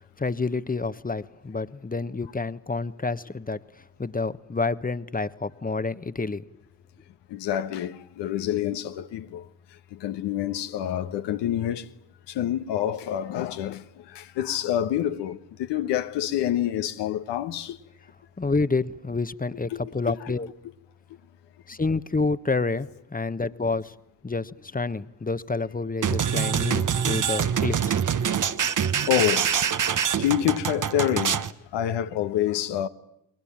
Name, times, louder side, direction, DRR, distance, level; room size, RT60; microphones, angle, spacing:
voice 1, 0.2-3.6 4.0-6.4 18.4-20.5 21.7-23.9 24.2-28.0, left 3 dB, 20° left, 1.2 m, -28 dB
voice 2, 7.3-9.4 9.9-11.9 12.3-17.8 19.7-20.1 29.1-29.5 30.2-32.9, left 11 dB, 80° left, 1.4 m, -27 dB
sound 1, 26.0-31.5, right 8 dB, 45° right, 1.3 m, -25 dB
29.5 x 22.0 x 8.8 m
supercardioid pair, 50°, 41 cm